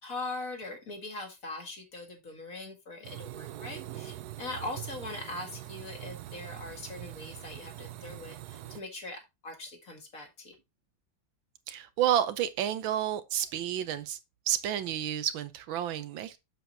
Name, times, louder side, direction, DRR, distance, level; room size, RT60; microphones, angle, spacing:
voice 1, 0.0-10.5, left 2 dB, 45° left, 2.2 m, -41 dB
sound 1, 3.0-8.8, right 14 dB, 70° right, 1.0 m, -43 dB
voice 2, 11.7-14.2 14.5-16.4, right 10 dB, 85° right, 1.6 m, -30 dB
7.6 x 7.0 x 2.7 m
omnidirectional pair, 2.1 m